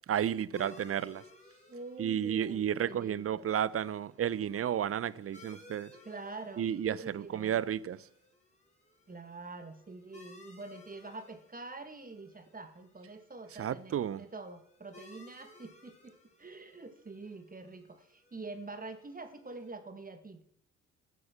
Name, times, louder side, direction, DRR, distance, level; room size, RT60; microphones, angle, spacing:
voice 1, 0.1-1.2 2.0-5.9 6.6-8.1 13.6-14.3, right 9 dB, 45° right, 0.7 m, -32 dB
sound 1, 0.5-19.7, left 3 dB, 20° left, 5.2 m, -59 dB
voice 2, 1.7-3.5 6.0-7.7 9.1-20.4, right 3 dB, 25° right, 2.0 m, -46 dB
14.0 x 9.5 x 7.4 m
hypercardioid pair, 55°, 32 cm